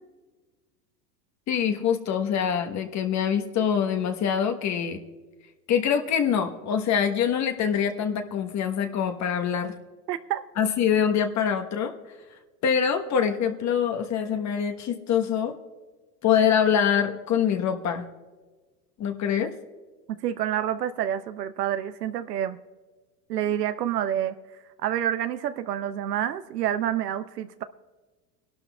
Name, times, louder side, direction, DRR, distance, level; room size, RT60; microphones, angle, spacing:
voice 1, 1.5-5.0 5.7-9.7 10.6-11.9 12.6-15.6 16.2-18.0 19.0-19.5, left 8 dB, 35° left, 5 dB, 1.1 m, -24 dB
voice 2, 10.1-10.4 20.1-22.6 23.3-24.4 24.8-27.6, right 11 dB, 85° right, 10 dB, 0.7 m, -28 dB
24.0 x 12.0 x 2.3 m, 1.3 s
hypercardioid pair, 90°, 47 cm